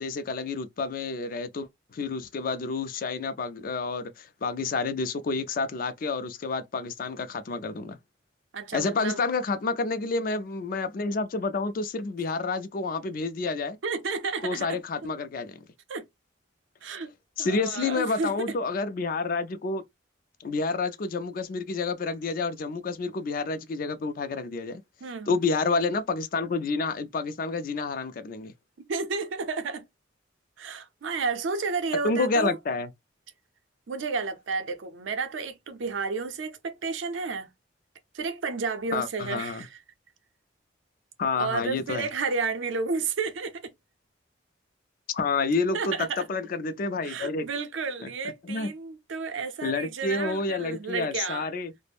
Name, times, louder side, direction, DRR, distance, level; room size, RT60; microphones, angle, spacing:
voice 1, 0.0-8.0 8.7-13.8 14.4-15.6 17.4-19.8 20.4-24.8 25.3-28.5 32.0-32.9 38.9-39.7 41.2-42.1 45.1-47.5 48.5-48.7 49.6-51.7, left 3 dB, 50° left, 0.4 m, -29 dB
voice 2, 8.5-9.2 13.8-14.8 15.9-16.1 16.8-17.1 17.4-18.6 25.0-25.4 28.8-29.9 30.6-32.6 33.9-37.5 38.1-39.8 41.3-43.7 45.7-46.2 47.0-51.5, right 4 dB, 85° right, 0.5 m, -31 dB
2.4 x 2.0 x 3.3 m
head